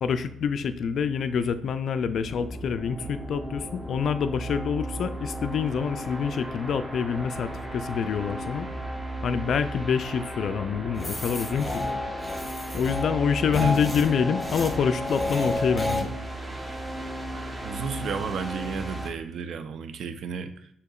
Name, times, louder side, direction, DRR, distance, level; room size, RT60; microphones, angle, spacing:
voice 1, 0.0-8.7 9.2-11.8 12.7-16.1, left 7 dB, 60° left, 11 dB, 0.3 m, -26 dB
sound 1, 2.0-19.1, right 1 dB, 10° right, 0.9 m, -35 dB
sound 2, 11.0-16.0, left 1 dB, 15° left, 0.9 m, -31 dB
voice 2, 17.3-20.7, right 6 dB, 70° right, 8 dB, 0.5 m, -33 dB
6.4 x 2.8 x 2.4 m, 0.71 s
cardioid pair, 90°, 0 cm